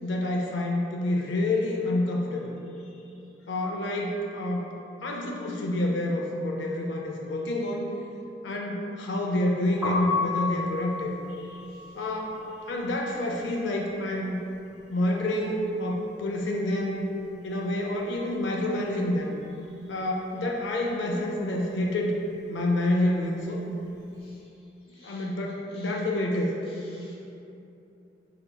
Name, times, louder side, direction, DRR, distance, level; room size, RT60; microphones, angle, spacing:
voice 1, 0.0-2.5 3.5-4.7 5.0-7.9 8.4-11.1 11.9-12.4 12.7-14.4 14.9-17.1 17.4-19.4 19.9-22.2 22.5-23.7 25.0-26.5, left 1 dB, 90° left, -1 dB, 0.4 m, -28 dB
Piano, 9.7-15.6 15.9-17.5 17.7-24.2, left 3 dB, 5° right, 1.3 m, -35 dB
voice 2, 11.4-11.8 24.2-24.4 24.9-25.2 25.7-25.9 26.9-27.2, left 2 dB, 30° left, -6 dB, 0.7 m, -55 dB
4.4 x 3.8 x 2.2 m, 2.8 s
head